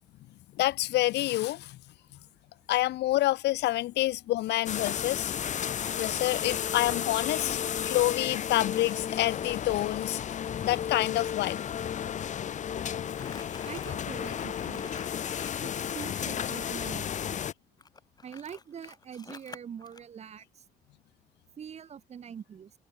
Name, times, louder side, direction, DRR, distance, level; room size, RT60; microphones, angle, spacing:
voice 1, 0.6-1.8 2.7-5.3 6.0-10.2 10.6-11.6, left 16 dB, 80° left, 0.9 m, -28 dB
sound 1, 4.7-17.5, left 9 dB, 45° left, 4.2 m, -33 dB
Crumpling crinkling, 13.1-16.2 17.8-20.0, left 4 dB, 25° left, 7.7 m, -48 dB
voice 2, 13.6-15.0 15.6-17.4 18.2-20.6 21.6-22.7, right 8 dB, 40° right, 4.0 m, -44 dB
cardioid pair, 160°, 17 cm